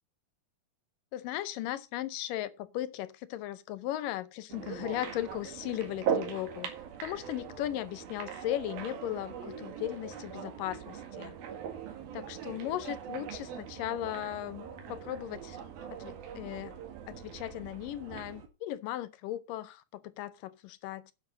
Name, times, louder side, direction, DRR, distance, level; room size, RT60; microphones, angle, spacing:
voice 1, 1.1-6.7 7.0-11.4 12.1-15.6 16.0-16.8 17.1-21.1, left 13 dB, 75° left, 2.2 m, -37 dB
sound 1, 4.5-18.5, right 8 dB, 75° right, 3.8 m, -40 dB
10.5 x 7.2 x 5.4 m
omnidirectional pair, 4.3 m